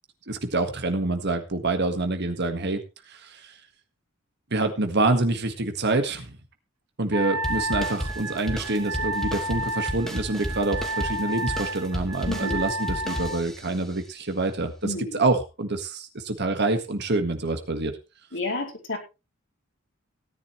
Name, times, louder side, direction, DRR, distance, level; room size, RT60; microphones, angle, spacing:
voice 1, 0.3-3.6 4.5-6.4 7.0-17.9, right 2 dB, 55° right, 6 dB, 1.7 m, -26 dB
Wind instrument woodwind instrument, 7.1-13.5, right 1 dB, 80° right, 1.7 m, -31 dB
sound 1, 7.4-13.8, equal, ahead, 2.9 m, -33 dB
voice 2, 12.3-12.7 14.8-15.2 18.3-19.0, left 2 dB, 65° left, 0 dB, 4.4 m, -31 dB
17.0 x 10.5 x 3.2 m, 0.29 s
head